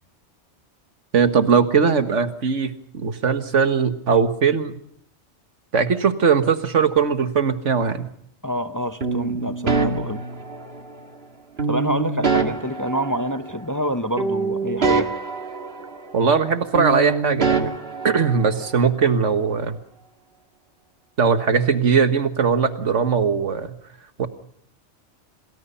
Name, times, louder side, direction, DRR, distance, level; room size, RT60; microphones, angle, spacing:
voice 1, 1.1-4.8 5.7-8.1 16.1-17.7 18.0-19.8 21.2-23.8 24.2-24.3, right 6 dB, 85° right, 10 dB, 1.9 m, -20 dB
voice 2, 8.4-10.2 11.7-15.1, equal, 20° left, 9 dB, 0.8 m, -27 dB
sound 1, 9.0-11.0 11.6-13.9 14.2-16.5 16.7-18.8, right 4 dB, 55° right, 2.1 m, -25 dB
28.0 x 20.0 x 5.6 m, 0.69 s
omnidirectional pair, 1.2 m